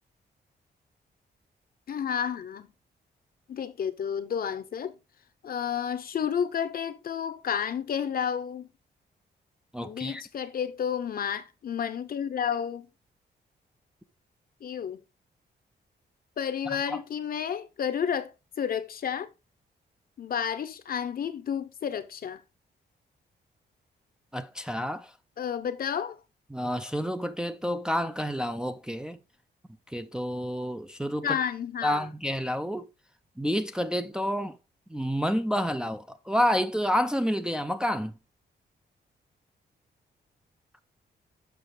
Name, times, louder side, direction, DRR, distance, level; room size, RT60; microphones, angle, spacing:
voice 1, 1.9-2.7 3.5-4.9 5.4-8.7 9.8-12.9 14.6-15.0 16.4-19.3 20.2-22.4 25.4-26.2 31.2-32.1, left 8 dB, 55° left, 0.8 m, -31 dB
voice 2, 9.7-10.2 16.7-17.0 24.3-25.1 26.5-29.2 29.9-31.4 31.8-32.9 33.4-34.6 34.9-38.2, equal, 5° right, 0.4 m, -29 dB
6.9 x 5.8 x 3.8 m
wide cardioid pair, 135°, 18 cm